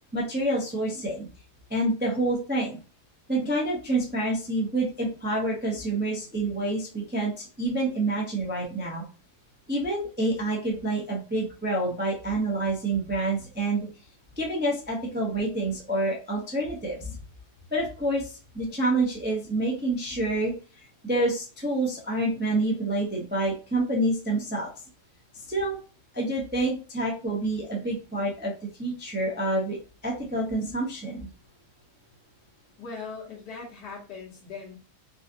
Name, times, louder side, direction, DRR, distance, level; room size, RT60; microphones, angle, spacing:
voice 1, 0.1-1.3 1.7-2.8 3.3-9.0 9.7-13.9 14.4-17.1 17.7-20.5 21.0-24.7 25.5-25.8 26.1-28.5 28.8-29.8 30.0-31.3, right 2 dB, 15° right, -2 dB, 0.3 m, -27 dB
voice 2, 32.8-34.8, left 4 dB, 85° left, -2 dB, 1.6 m, -40 dB
3.9 x 2.5 x 2.7 m, 0.35 s
omnidirectional pair, 1.7 m